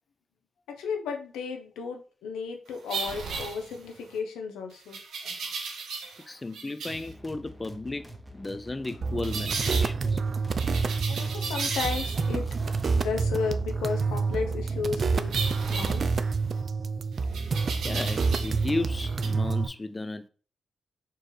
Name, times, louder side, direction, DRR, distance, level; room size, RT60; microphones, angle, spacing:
voice 1, 0.7-5.0 11.1-15.3 15.7-16.0, left 5 dB, 90° left, 0.6 m, -34 dB
sound 1, 2.9-4.1 4.9-6.2 6.5-7.1 9.2-9.9 10.6-12.4 15.3-16.6 17.3-18.7 18.9-19.3, right 5 dB, 75° right, 0.7 m, -35 dB
voice 2, 6.3-8.1 8.3-10.2 17.8-20.3, left 2 dB, 25° left, 0.3 m, -34 dB
sound 2, 6.8-13.5, right 1 dB, 15° right, 0.8 m, -47 dB
sound 3, 9.0-19.7, right 4 dB, 55° right, 0.3 m, -28 dB
4.4 x 2.5 x 3.2 m
supercardioid pair, 50°, 0 cm